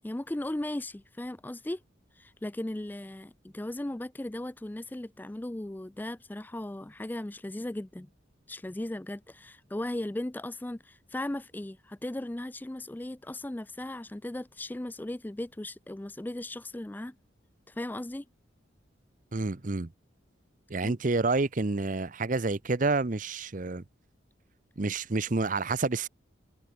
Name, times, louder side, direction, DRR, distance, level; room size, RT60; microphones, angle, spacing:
voice 1, 0.0-1.8 2.2-8.1 8.5-17.1 17.7-18.3 20.8-20.9, left 1 dB, 10° left, 0.3 m, -37 dB
voice 2, 19.3-19.9 20.7-23.8 24.8-26.1, right 3 dB, 40° right, 0.7 m, -28 dB
head